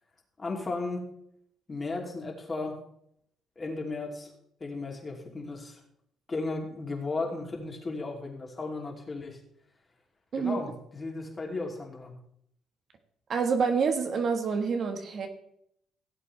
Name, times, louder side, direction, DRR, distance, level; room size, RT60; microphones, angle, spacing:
voice 1, 0.4-1.0 1.7-2.8 3.6-4.3 4.6-5.8 6.3-9.4 10.4-12.2, left 3 dB, 30° left, 0 dB, 2.9 m, -35 dB
voice 2, 13.3-15.3, right 5 dB, 50° right, 5 dB, 1.5 m, -27 dB
17.0 x 7.9 x 3.3 m, 0.71 s
cardioid pair, 95°, 0 cm